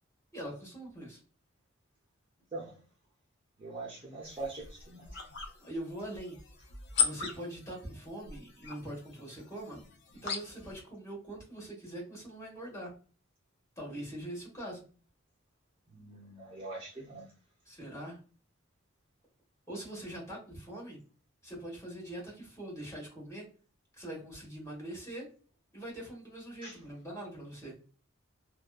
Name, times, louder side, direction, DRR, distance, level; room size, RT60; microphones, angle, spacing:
voice 1, 0.3-1.2 5.6-6.4 7.0-9.8 10.2-12.9 13.8-14.8 17.7-18.2 19.7-21.0 21.4-23.4 24.0-25.3 25.7-27.7, right 1 dB, 15° left, 1.1 m, -42 dB
voice 2, 2.5-2.8 3.6-5.2 15.9-17.3 26.6-26.8, right 2 dB, 25° right, 0.6 m, -43 dB
sound 1, 4.2-10.8, left 7 dB, 55° left, 0.5 m, -38 dB
2.6 x 2.3 x 2.2 m
head